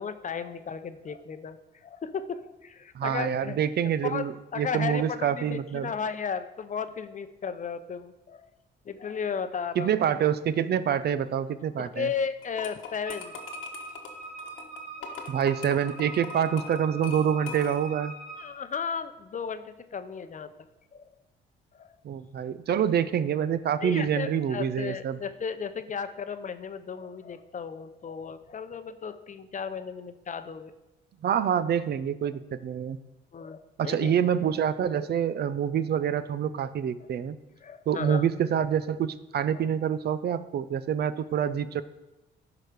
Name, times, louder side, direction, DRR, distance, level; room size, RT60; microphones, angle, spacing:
voice 1, 0.0-1.6 1.8-3.6 4.0-4.2 4.5-8.5 8.9-10.0 11.8-13.3 15.1-15.2 18.4-20.5 20.9-21.0 21.7-22.0 23.8-30.7 33.3-34.1 37.6-38.2 40.3-40.4, left 6 dB, 40° left, 10 dB, 0.7 m, -35 dB
voice 2, 2.9-5.9 9.8-12.1 15.3-18.1 22.0-25.2 31.2-33.0 33.8-37.4 37.9-41.8, right 8 dB, 55° right, 14 dB, 0.5 m, -26 dB
sound 1, 12.4-18.0, left 6 dB, 85° left, 1.2 m, -42 dB
Wind instrument woodwind instrument, 13.1-18.6, right 3 dB, 35° right, 1.9 m, -42 dB
12.5 x 4.9 x 5.1 m, 1.0 s
cardioid pair, 90°, 20 cm